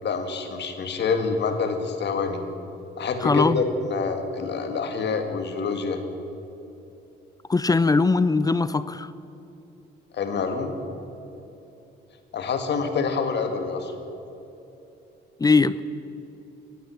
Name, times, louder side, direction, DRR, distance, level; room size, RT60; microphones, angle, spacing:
voice 1, 0.0-2.4 3.0-6.0 10.1-10.7 12.3-13.9, left 5 dB, 60° left, 6 dB, 1.8 m, -26 dB
voice 2, 3.2-3.6 7.5-9.1 15.4-15.8, left 3 dB, 20° left, 15 dB, 0.4 m, -20 dB
14.0 x 9.5 x 8.4 m, 3.0 s
cardioid pair, 90°, 20 cm